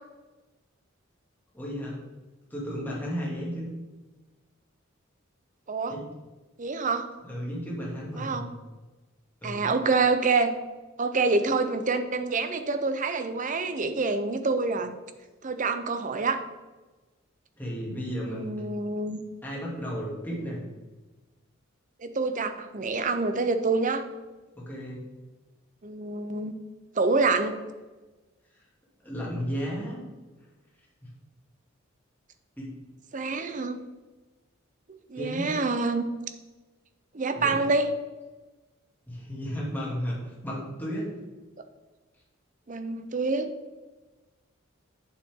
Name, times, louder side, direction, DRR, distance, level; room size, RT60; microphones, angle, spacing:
voice 1, 1.5-2.0 2.5-3.7 5.9-6.1 7.2-8.4 9.4-9.7 17.6-18.5 19.4-20.6 24.5-25.0 29.0-30.0 31.0-31.1 32.6-32.7 35.2-35.6 37.4-37.6 39.1-41.1, equal, 10° left, -5 dB, 2.5 m, -34 dB
voice 2, 6.6-7.1 8.2-8.5 9.4-10.5 11.0-14.9 15.4-16.4 18.3-19.2 22.0-24.1 25.8-26.5 27.0-27.5 33.1-33.8 35.1-36.0 37.1-37.9 42.7-43.5, right 3 dB, 40° right, 9 dB, 0.7 m, -26 dB
8.7 x 7.1 x 3.7 m, 1.2 s
head